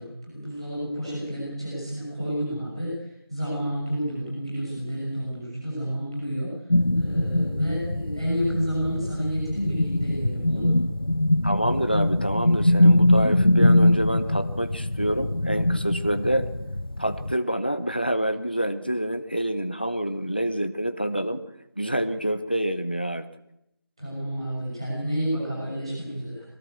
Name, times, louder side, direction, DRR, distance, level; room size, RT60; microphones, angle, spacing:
voice 1, 0.0-6.5 6.9-10.8 24.0-26.4, equal, 15° right, -8 dB, 6.1 m, -30 dB
sound 1, 6.7-17.3, left 1 dB, 65° left, 0.7 m, -22 dB
voice 2, 11.4-16.5 17.0-21.4 21.8-23.3, right 1 dB, 25° left, 9 dB, 1.0 m, -27 dB
23.0 x 17.5 x 8.3 m, 0.81 s
figure-of-eight pair, 175°, 13 cm